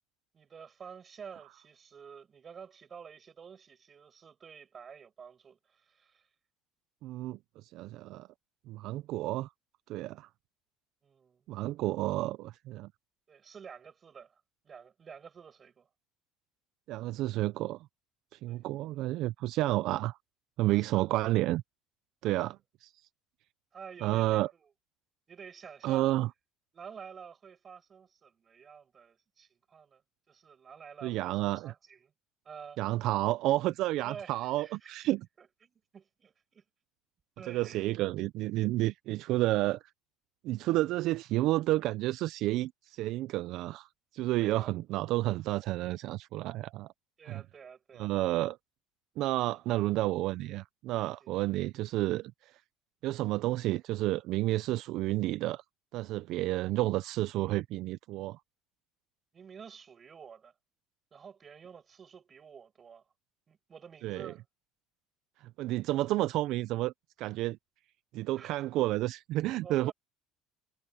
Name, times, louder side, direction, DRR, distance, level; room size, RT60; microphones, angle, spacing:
voice 1, 0.3-6.3 11.0-11.4 13.3-15.9 18.5-18.6 20.7-21.0 23.7-24.6 25.3-26.1 26.7-30.0 30.3-32.1 32.4-32.8 34.0-35.1 35.4-36.6 37.4-37.8 44.4-44.7 47.2-48.1 49.5-49.6 51.2-51.3 59.3-60.5 61.1-63.0 63.5-64.4 68.3-68.6 69.6-69.9, right 6 dB, 20° right, 5.8 m, -50 dB
voice 2, 7.0-8.3 8.7-9.5 9.9-10.3 11.5-12.9 16.9-17.9 18.3-20.2 20.6-21.6 22.2-22.9 24.0-24.5 25.8-26.3 31.0-31.7 32.8-35.2 37.5-39.8 40.4-43.9 44.1-46.9 47.3-47.4 48.0-48.6 49.2-52.6 53.0-55.6 55.9-58.4 64.0-64.3 65.4-66.9 67.2-67.6 68.1-69.9, right 17 dB, 50° right, 0.3 m, -31 dB
cardioid pair, 180°, 0 cm